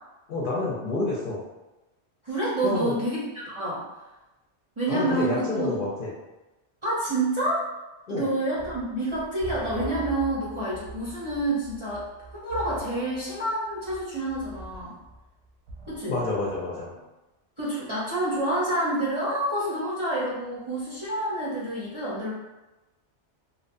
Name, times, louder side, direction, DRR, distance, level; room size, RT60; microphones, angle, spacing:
voice 1, 0.3-1.4 2.6-2.9 4.9-6.1 8.1-8.2 16.1-17.0, left 2 dB, 60° left, -5 dB, 0.6 m, -28 dB
voice 2, 2.2-3.8 4.8-5.7 6.8-7.7 8.1-12.0 12.3-15.0 15.9-16.2 17.6-22.3, right 1 dB, 35° right, -9 dB, 0.6 m, -28 dB
sound 1, 8.6-16.7, right 2 dB, 80° right, 0.9 m, -41 dB
2.8 x 2.1 x 2.5 m, 1.0 s
omnidirectional pair, 1.2 m